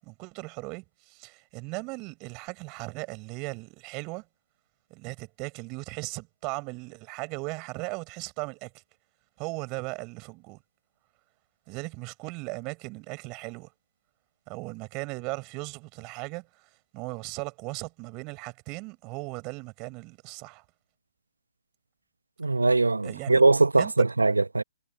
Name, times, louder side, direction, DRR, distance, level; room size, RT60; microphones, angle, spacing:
voice 1, 0.0-4.3 4.9-8.7 9.4-10.6 11.7-13.7 14.5-20.6 23.0-23.4 23.8-24.1, right 28 dB, 25° right, 6.7 m, -37 dB
voice 2, 22.4-24.6, right 3 dB, 75° right, 1.3 m, -21 dB
figure-of-eight pair, 130°, 0 cm